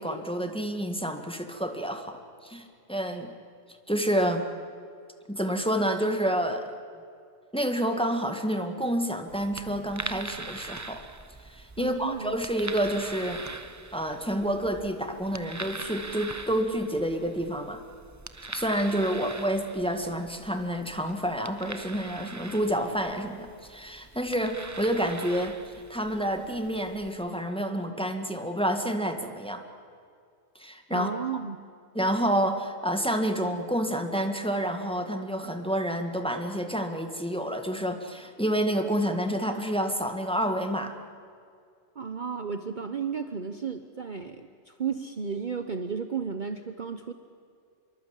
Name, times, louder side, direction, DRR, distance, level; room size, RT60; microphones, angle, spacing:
voice 1, 0.0-3.3 3.9-4.4 5.3-6.6 7.5-11.0 11.5-13.4 13.9-17.8 18.5-25.6 25.9-29.6 30.5-31.1 31.9-40.9, equal, 5° left, 5 dB, 1.7 m, -29 dB
sound 1, 9.3-27.1, right 3 dB, 20° right, 0.6 m, -42 dB
voice 2, 11.8-12.4 30.9-31.6 42.0-47.1, right 6 dB, 40° right, 8 dB, 1.0 m, -33 dB
26.0 x 23.5 x 8.3 m, 2.2 s
omnidirectional pair, 1.3 m